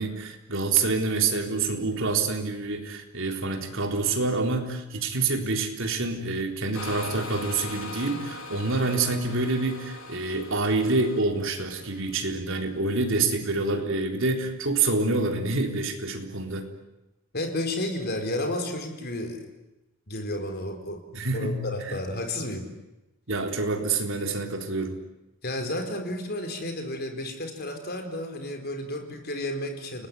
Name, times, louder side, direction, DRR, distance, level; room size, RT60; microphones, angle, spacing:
voice 1, 0.0-16.7 21.1-22.0 23.3-25.0, right 3 dB, 65° right, 4 dB, 3.8 m, -27 dB
sound 1, 6.7-12.2, left 3 dB, 75° left, 3.9 m, -40 dB
voice 2, 17.3-19.5 20.1-21.0 21.3-22.7 25.4-30.1, left 1 dB, 50° left, 5 dB, 4.4 m, -32 dB
30.0 x 19.5 x 9.8 m, 0.97 s
head